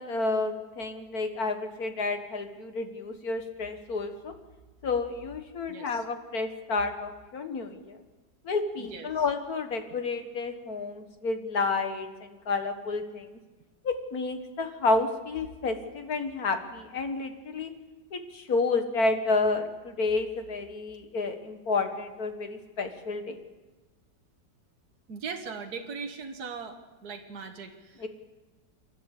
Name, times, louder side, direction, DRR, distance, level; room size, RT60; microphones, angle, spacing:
voice 1, 0.0-4.3 4.8-8.0 8.4-13.4 13.8-17.7 18.1-23.4 28.0-28.1, left 3 dB, 55° left, 7 dB, 2.1 m, -30 dB
voice 2, 5.7-6.0 8.8-9.2 25.1-28.1, right 5 dB, 60° right, 4 dB, 2.0 m, -39 dB
28.0 x 12.0 x 8.4 m, 1.2 s
omnidirectional pair, 1.9 m